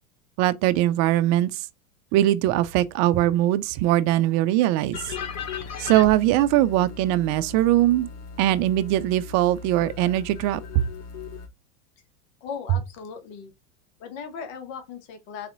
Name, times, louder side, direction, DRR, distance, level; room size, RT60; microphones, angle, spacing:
voice 1, 0.4-1.6 2.1-5.1 5.8-8.1 8.4-10.6, right 14 dB, 40° right, 0.5 m, -21 dB
sound 1, 4.9-11.5, left 6 dB, 35° left, 0.8 m, -37 dB
voice 2, 12.4-13.5 14.0-15.5, left 6 dB, 65° left, 1.2 m, -37 dB
4.0 x 2.8 x 2.6 m
hypercardioid pair, 110°, 44 cm